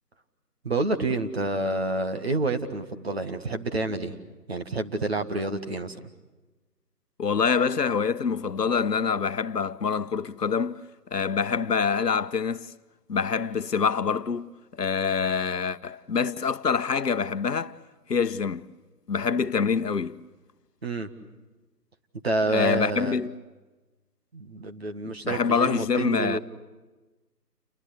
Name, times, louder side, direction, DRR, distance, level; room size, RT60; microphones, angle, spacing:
voice 1, 0.6-4.2 4.5-6.0 20.8-21.1 22.2-23.2 24.3-26.4, right 2 dB, 40° right, 1.8 m, -28 dB
voice 2, 7.2-10.8 11.1-12.7 13.1-17.8 18.1-18.7 19.1-20.2 22.5-23.3 25.2-26.4, left 6 dB, 75° left, 1.1 m, -26 dB
29.5 x 23.0 x 8.4 m
figure-of-eight pair, 170°, 49 cm